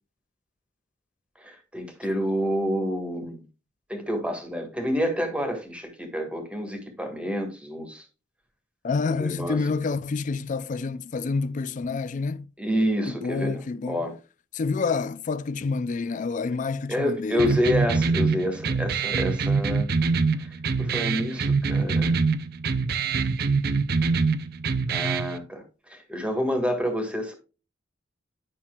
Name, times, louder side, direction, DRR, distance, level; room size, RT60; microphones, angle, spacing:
voice 1, 1.4-3.4 3.9-8.0 9.0-9.6 12.6-14.1 16.9-19.9 20.4-22.2 24.9-27.3, equal, 5° right, 1.5 m, -28 dB
voice 2, 8.8-12.5 13.1-14.0 14.5-17.5, left 4 dB, 45° left, 0.4 m, -28 dB
sound 1, 17.4-25.4, right 4 dB, 55° right, 0.5 m, -24 dB
9.7 x 5.7 x 2.3 m
head